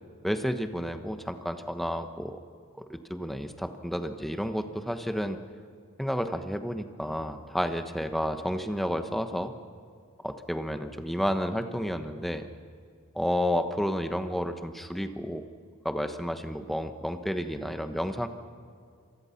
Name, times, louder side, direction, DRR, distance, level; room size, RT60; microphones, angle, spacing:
voice 1, 0.2-2.4 2.8-5.4 6.0-9.5 10.2-12.5 13.1-15.4 15.8-18.3, equal, ahead, 7 dB, 1.1 m, -31 dB
26.5 x 19.5 x 5.9 m, 2.3 s
head